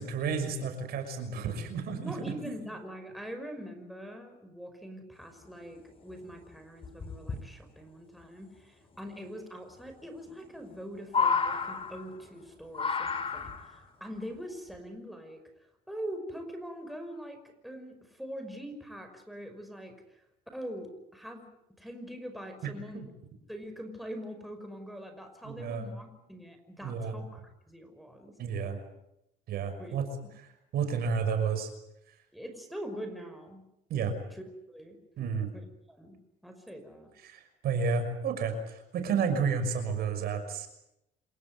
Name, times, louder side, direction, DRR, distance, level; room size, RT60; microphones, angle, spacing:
voice 1, 0.0-2.1 22.6-22.7 25.4-25.9 26.8-27.2 28.4-28.8 29.5-30.1 30.4-30.5 30.7-31.7 33.9-34.1 35.2-35.5 37.2-40.7, right 5 dB, 70° right, 8 dB, 6.0 m, -31 dB
voice 2, 2.0-15.4 15.9-19.9 20.5-21.5 21.8-23.1 23.5-28.4 29.8-30.0 30.2-30.3 32.3-33.6 34.3-35.0 35.9-37.1, equal, ahead, 5 dB, 5.6 m, -43 dB
sound 1, 5.8-5.9 6.1-6.2 6.8-7.4 8.9-9.0 10.3-10.8 11.0-12.3 12.7-13.8 14.7-14.8, left 5 dB, 35° left, 4.6 m, -30 dB
28.0 x 17.0 x 9.6 m, 0.84 s
cardioid pair, 110°, 17 cm